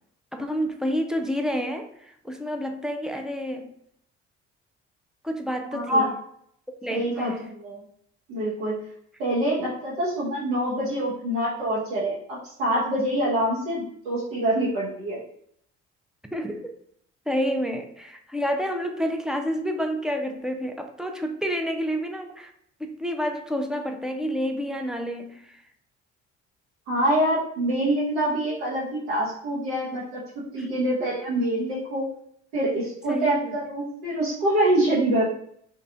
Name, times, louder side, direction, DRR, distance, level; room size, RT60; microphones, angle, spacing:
voice 1, 0.3-3.7 5.2-6.1 6.8-7.4 16.3-16.7 17.3-22.5 22.8-25.6 30.6-30.7 33.1-33.5, equal, ahead, 3 dB, 0.3 m, -29 dB
voice 2, 5.7-6.1 6.9-7.8 8.3-8.8 9.2-15.2 26.9-30.2 30.5-32.1 32.5-35.2, right 1 dB, 75° right, -9 dB, 1.0 m, -25 dB
3.2 x 2.4 x 2.3 m, 0.68 s
hypercardioid pair, 50°, 36 cm